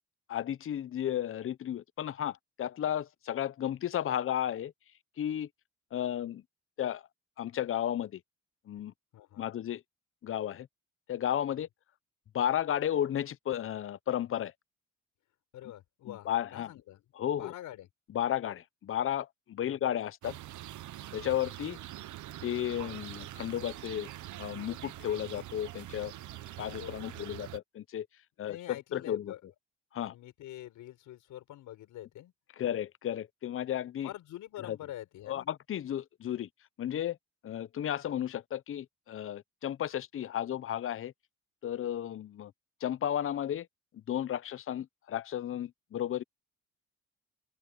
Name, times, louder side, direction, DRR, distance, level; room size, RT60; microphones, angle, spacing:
voice 1, 0.3-4.7 5.2-5.5 5.9-6.4 6.8-7.0 7.4-8.2 8.7-8.9 9.4-9.8 10.2-10.7 11.1-11.7 12.3-14.5 16.1-16.7 17.1-17.5 18.1-20.4 21.1-21.8 22.4-24.1 24.4-26.1 26.6-28.1 28.4-29.3 29.9-30.1 32.6-34.1 34.7-34.8 35.3-36.5 36.8-37.2 37.4-41.1 41.6-42.5 42.8-43.7 43.9-46.2, left 10 dB, 45° left, 0.7 m, -33 dB
voice 2, 9.1-9.5 11.5-11.6 15.5-17.0 17.3-17.9 19.6-19.8 26.8-27.4 28.4-29.4 30.0-32.3 34.0-35.5, left 13 dB, 85° left, 5.6 m, -46 dB
sound 1, 20.2-27.6, right 14 dB, 75° right, 1.0 m, -44 dB
open air
cardioid pair, 90°, 30 cm